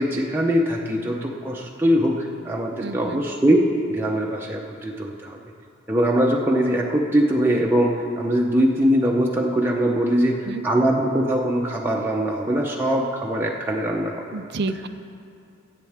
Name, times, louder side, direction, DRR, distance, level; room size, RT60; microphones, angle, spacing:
voice 1, 0.0-5.4 5.9-14.3, equal, 10° right, -2 dB, 0.8 m, -22 dB
voice 2, 2.8-3.2 10.4-10.6 14.3-14.9, right 3 dB, 55° right, 11 dB, 0.5 m, -30 dB
23.5 x 8.4 x 3.6 m, 2.4 s
head